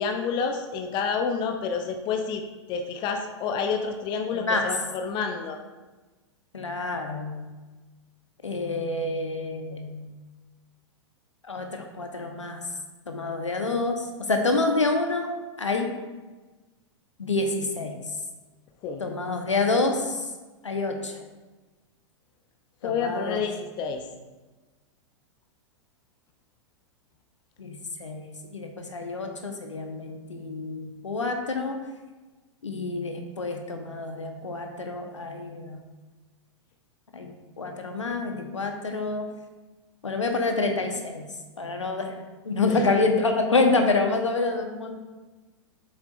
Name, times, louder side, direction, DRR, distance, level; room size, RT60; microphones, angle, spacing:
voice 1, 0.0-2.4 2.7-5.6 18.8-19.0 22.8-24.0 42.6-42.9, left 5 dB, 30° left, 5 dB, 0.6 m, -29 dB
voice 2, 4.3-4.7 6.5-7.5 8.4-10.1 11.5-12.6 13.1-15.3 15.6-15.9 17.2-17.9 19.0-20.2 20.6-21.1 22.8-23.4 27.6-28.3 28.5-31.8 32.6-35.8 37.1-37.3 37.6-39.2 40.0-41.2 41.6-42.1 42.4-45.0, left 3 dB, 80° left, 4 dB, 1.1 m, -27 dB
7.6 x 7.2 x 2.6 m, 1.2 s
figure-of-eight pair, 100°, 15 cm